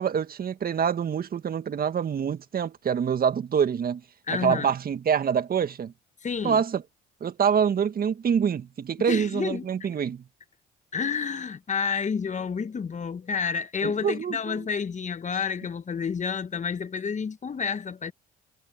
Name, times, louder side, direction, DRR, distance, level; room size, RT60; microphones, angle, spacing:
voice 1, 0.0-4.0 4.3-5.9 6.4-6.8 7.2-10.2 13.8-14.6, right 7 dB, 45° right, 1.9 m, -26 dB
voice 2, 4.3-4.7 6.2-6.6 9.1-9.7 10.9-18.1, left 6 dB, 35° left, 1.4 m, -29 dB
hypercardioid pair, 60°, 21 cm